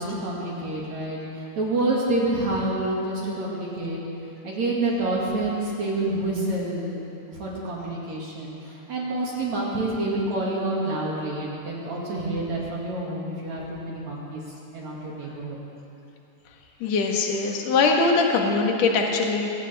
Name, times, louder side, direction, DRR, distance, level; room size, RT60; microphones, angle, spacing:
voice 1, 0.0-4.0 4.4-7.0 7.3-14.4 14.7-15.6, right 2 dB, 50° right, -5 dB, 2.8 m, -28 dB
voice 2, 16.8-19.5, left 4 dB, 75° left, 1 dB, 1.6 m, -22 dB
23.0 x 17.5 x 3.5 m, 2.8 s
omnidirectional pair, 5.2 m